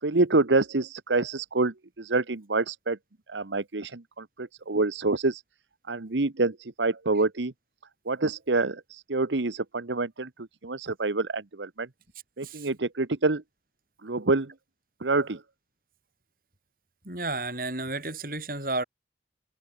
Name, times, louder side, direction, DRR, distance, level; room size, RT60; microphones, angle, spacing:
voice 1, 0.0-3.0 3.3-5.4 5.9-7.5 8.1-10.3 10.6-11.9 12.4-13.4 14.0-14.5 15.0-15.4, right 3 dB, 90° right, 1.2 m, -27 dB
voice 2, 17.0-18.8, right 2 dB, 50° right, 7.6 m, -32 dB
head